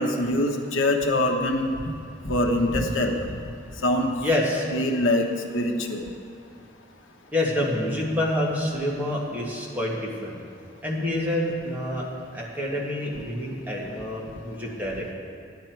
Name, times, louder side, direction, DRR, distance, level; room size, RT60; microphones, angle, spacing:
voice 1, 0.0-1.8 2.2-3.2 3.8-4.1 4.7-5.2 5.5-6.0, left 1 dB, 75° left, 3 dB, 1.0 m, -23 dB
voice 2, 4.2-4.7 7.3-10.4 10.8-12.0 12.3-15.1, left 1 dB, 10° right, -4 dB, 1.8 m, -27 dB
13.5 x 9.9 x 4.6 m, 2.4 s
head